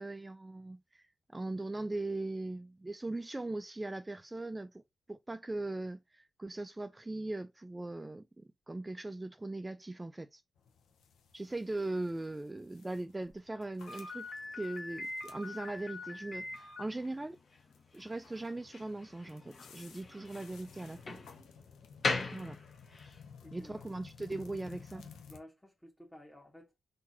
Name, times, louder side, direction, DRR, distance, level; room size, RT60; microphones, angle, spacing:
voice 1, 0.0-4.8 5.1-10.4 11.3-14.3 14.5-17.4 17.9-21.2 22.3-22.6 23.5-25.1, right 2 dB, 20° right, 0.3 m, -40 dB
sound 1, 10.5-25.4, left 6 dB, 75° left, 0.6 m, -56 dB
Slam, 13.9-23.2, left 3 dB, 50° left, 1.5 m, -41 dB
voice 2, 23.4-23.8 24.9-26.8, left 1 dB, 5° left, 1.2 m, -54 dB
3.7 x 2.7 x 2.8 m
hypercardioid pair, 40°, 0 cm